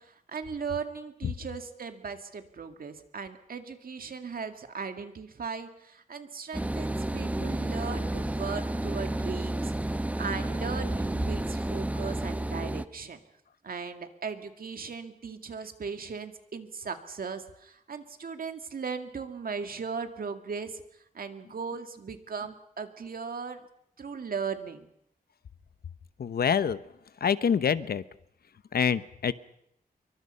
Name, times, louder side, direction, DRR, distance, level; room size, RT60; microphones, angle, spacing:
voice 1, 0.0-13.2 13.6-20.8 21.1-23.6 24.0-24.9, right 5 dB, 70° right, 7 dB, 2.2 m, -38 dB
sound 1, 6.5-12.9, right 1 dB, 10° right, 0.8 m, -31 dB
voice 2, 26.2-26.8 27.2-28.0 28.7-29.3, left 7 dB, 85° left, 14 dB, 0.9 m, -26 dB
26.5 x 23.5 x 5.6 m, 0.75 s
wide cardioid pair, 140°, 16 cm